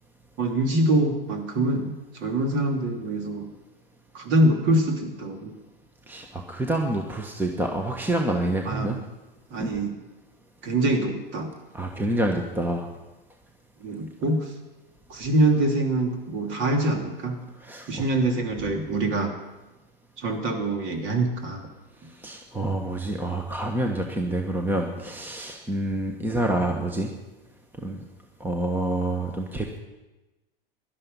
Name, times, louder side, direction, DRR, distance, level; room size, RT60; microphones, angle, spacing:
voice 1, 0.4-3.5 4.1-5.5 8.6-9.0 9.5-10.0 10.6-11.5 13.8-14.5 15.1-17.4 17.9-19.3 20.2-21.7 22.0-22.1, right 1 dB, 40° right, 3 dB, 3.1 m, -24 dB
voice 2, 6.1-9.0 9.6-9.7 11.7-12.9 17.6-18.0 22.2-27.1 27.8-28.0 28.4-29.8, right 1 dB, 5° right, 3 dB, 1.4 m, -27 dB
17.0 x 12.0 x 5.5 m, 1.1 s
hypercardioid pair, 110°, 29 cm